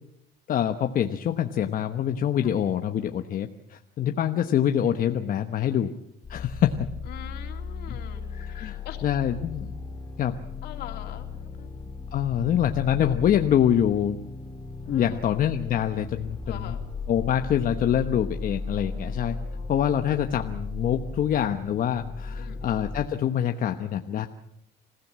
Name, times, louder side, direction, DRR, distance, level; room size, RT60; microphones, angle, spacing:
voice 1, 0.5-5.9 6.3-6.9 7.9-8.0 8.3-9.7 10.2-10.3 12.1-14.2 14.9-16.7 17.1-19.4 19.7-24.3, left 9 dB, 55° left, 6 dB, 1.1 m, -25 dB
sound 1, 6.2-23.1, left 4 dB, 25° left, 3.2 m, -36 dB
voice 2, 7.1-9.0 10.6-12.0 14.8-15.3 16.4-16.8 19.3-19.9 22.4-22.9, left 10 dB, 75° left, 4 dB, 3.2 m, -44 dB
27.0 x 16.0 x 7.5 m, 0.81 s
cardioid pair, 110°, 17 cm